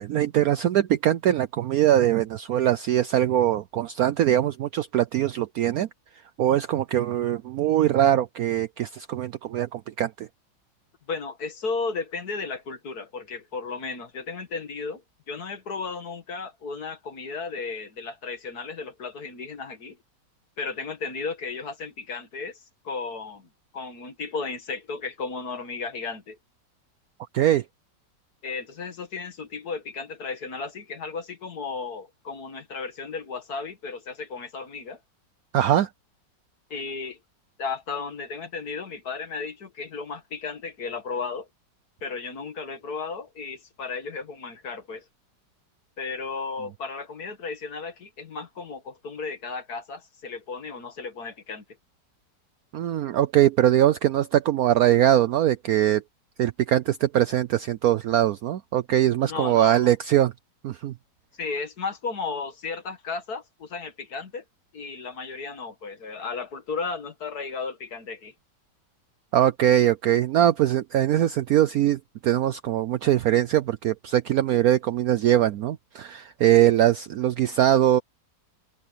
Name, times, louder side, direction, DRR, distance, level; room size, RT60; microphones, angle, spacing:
voice 1, 0.0-5.9 6.4-10.3 27.3-27.6 35.5-35.9 52.7-56.0 56.4-60.3 60.6-60.9 69.3-78.0, right 12 dB, 70° right, 1.0 m, -22 dB
voice 2, 11.1-15.0 15.3-20.0 20.6-22.6 22.8-26.4 28.4-35.0 36.7-37.2 37.6-41.5 42.0-45.1 46.0-51.6 59.2-59.9 61.4-64.4 64.7-68.3, left 4 dB, 60° left, 2.2 m, -34 dB
open air
omnidirectional pair, 1.9 m